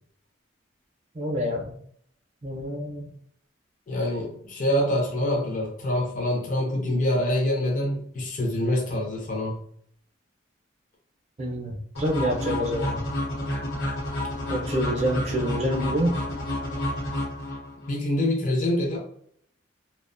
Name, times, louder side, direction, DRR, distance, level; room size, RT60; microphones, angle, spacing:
voice 1, 1.1-1.7 2.4-3.1 11.4-13.0 14.5-16.2, equal, 35° right, 0 dB, 0.5 m, -27 dB
voice 2, 3.9-9.6 17.9-19.0, left 1 dB, 40° left, -1 dB, 0.5 m, -25 dB
sound 1, 11.9-17.9, left 1 dB, 90° left, 0.9 m, -30 dB
2.4 x 2.1 x 2.4 m, 0.65 s
head